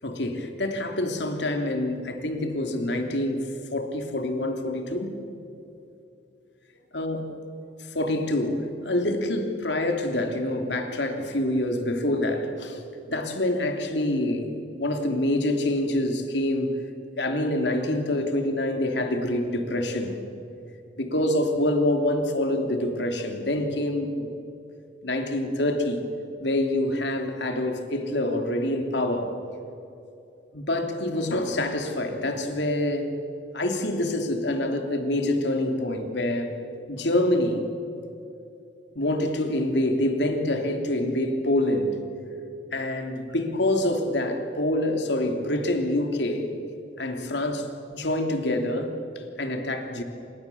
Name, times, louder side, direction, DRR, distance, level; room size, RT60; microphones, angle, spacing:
voice 1, 0.0-5.2 6.9-7.2 7.9-12.8 13.1-16.8 17.1-20.1 21.0-24.3 25.0-26.0 26.4-29.3 30.5-33.1 33.5-36.5 36.9-37.7 38.9-41.9 42.7-46.5 47.0-50.0, left 1 dB, 70° left, 3.0 m, -26 dB
28.5 x 27.5 x 7.1 m
head